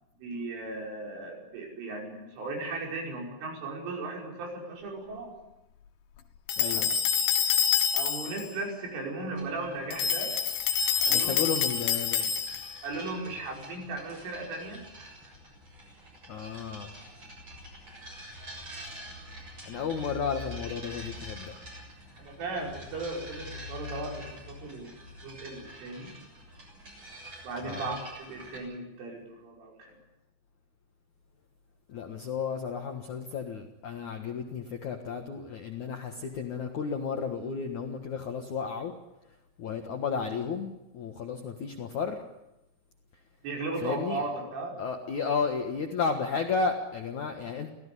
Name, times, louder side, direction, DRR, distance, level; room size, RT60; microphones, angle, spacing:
voice 1, 0.2-5.4 6.6-6.9 7.9-10.3 11.0-11.4 12.8-15.3 18.4-18.6 22.2-26.1 27.4-30.0 43.4-44.8, right 2 dB, 70° right, 1 dB, 7.7 m, -37 dB
sound 1, 6.5-8.5 9.9-12.8, left 7 dB, 70° left, 3.5 m, -27 dB
voice 2, 6.6-6.9 11.1-12.3 16.3-16.9 19.7-21.5 27.6-27.8 31.9-38.9 39.6-42.2 43.8-44.2 44.8-47.7, left 5 dB, 85° left, 4 dB, 1.7 m, -33 dB
sound 2, 9.3-28.6, equal, 30° right, 7.9 m, -46 dB
25.0 x 17.0 x 10.0 m, 0.94 s
omnidirectional pair, 6.0 m